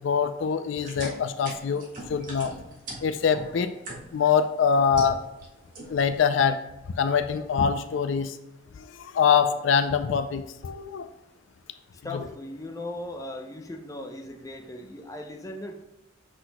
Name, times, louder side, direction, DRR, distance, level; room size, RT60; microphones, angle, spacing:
voice 1, 0.0-2.5 3.0-3.7 4.1-5.2 5.9-6.6 7.0-8.4 8.9-11.1, left 6 dB, 65° left, 10 dB, 0.3 m, -24 dB
sound 1, 0.8-4.3 4.7-5.5 5.7-6.2, right 1 dB, 40° right, 1.6 m, -40 dB
voice 2, 11.9-15.9, left 1 dB, 15° left, 4 dB, 0.6 m, -38 dB
8.0 x 6.0 x 2.2 m, 0.98 s
head